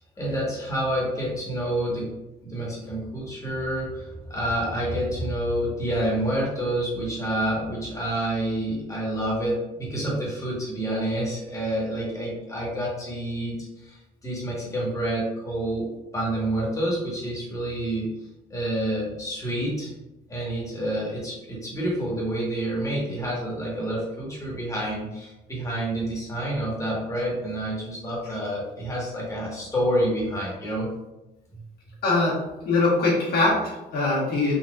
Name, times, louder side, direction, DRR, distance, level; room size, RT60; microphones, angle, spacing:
voice 1, 0.2-2.1 2.4-13.6 13.8-18.1 18.5-19.9 20.3-30.9, right 1 dB, 20° left, -5 dB, 1.4 m, -28 dB
voice 2, 32.0-32.3 32.6-34.6, left 3 dB, 70° left, -5 dB, 1.5 m, -22 dB
3.9 x 2.7 x 2.4 m, 0.99 s
cardioid pair, 110°, 17 cm